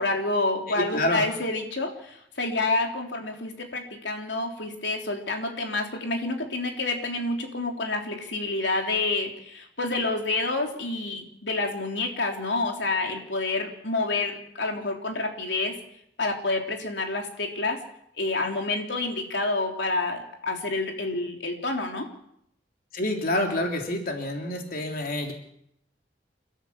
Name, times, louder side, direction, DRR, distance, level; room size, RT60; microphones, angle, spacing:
voice 1, 0.0-15.7 16.2-17.8 18.2-22.1, left 3 dB, 85° left, 2 dB, 3.5 m, -28 dB
voice 2, 22.9-25.3, left 1 dB, 55° left, 2 dB, 3.4 m, -27 dB
29.0 x 14.0 x 7.3 m, 0.73 s
head